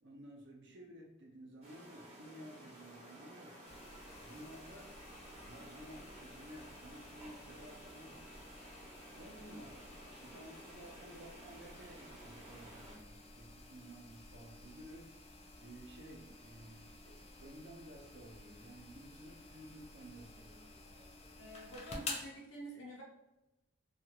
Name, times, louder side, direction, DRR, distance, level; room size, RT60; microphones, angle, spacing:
voice 1, 0.0-3.6 4.2-4.9 5.4-8.2 9.1-9.9 10.2-15.1 15.6-21.4, right 1 dB, 65° right, -1 dB, 0.7 m, -54 dB
sound 1, 1.6-13.0, right 1 dB, 35° right, 0.9 m, -54 dB
sound 2, 3.6-22.3, left 3 dB, 30° left, 0.4 m, -52 dB
voice 2, 21.4-23.0, right 1 dB, 85° left, -3 dB, 0.8 m, -48 dB
2.4 x 2.4 x 2.9 m, 0.97 s
head